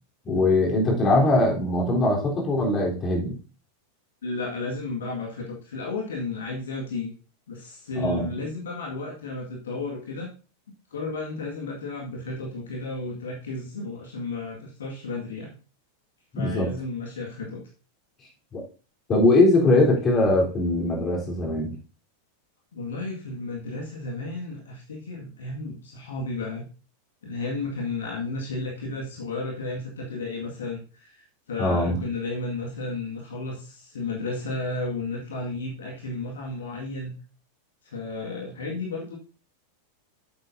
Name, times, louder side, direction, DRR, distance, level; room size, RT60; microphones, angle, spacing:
voice 1, 0.2-3.4 8.0-8.3 16.3-16.7 18.5-18.6 19.1-21.7 31.6-32.0, left 2 dB, 25° left, -2 dB, 3.7 m, -21 dB
voice 2, 4.2-7.1 7.5-10.3 10.9-15.5 16.3-17.6 22.7-26.7 27.2-37.2 37.8-39.2, left 3 dB, 65° left, -1 dB, 1.9 m, -33 dB
10.5 x 8.0 x 2.7 m, 0.35 s
figure-of-eight pair, 90°, 0 cm